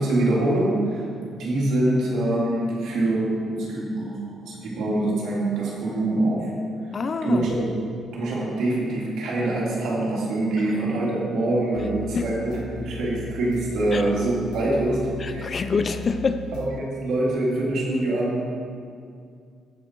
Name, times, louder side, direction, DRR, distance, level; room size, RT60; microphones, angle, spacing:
voice 1, 0.0-6.5 7.2-7.8 8.1-15.6 16.6-18.4, right 2 dB, 75° right, -4 dB, 2.8 m, -24 dB
voice 2, 6.9-7.5 12.1-12.3 13.9-14.0 15.2-16.4, left 4 dB, 40° left, 10 dB, 0.5 m, -26 dB
sound 1, 11.8-16.8, left 8 dB, 90° left, 0.5 m, -38 dB
15.0 x 5.3 x 4.6 m, 2.3 s
cardioid pair, 90°, 0 cm